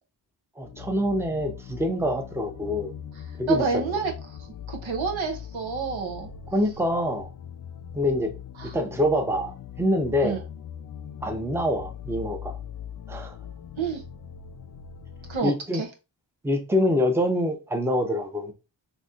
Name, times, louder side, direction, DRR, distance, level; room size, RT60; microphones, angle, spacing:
sound 1, 0.6-15.4, left 9 dB, 50° left, 0.5 m, -41 dB
voice 1, 0.6-2.9 3.4-3.8 6.5-7.3 7.9-8.3 8.7-10.4 11.2-12.6 13.1-13.3 15.4-15.8 16.4-18.5, left 1 dB, 5° right, 0.6 m, -25 dB
voice 2, 3.5-4.4 4.7-6.3 8.6-8.7 10.2-10.4 13.8-14.0 15.3-15.9, right 5 dB, 85° right, 0.8 m, -29 dB
4.0 x 2.7 x 2.4 m
wide cardioid pair, 65°, 46 cm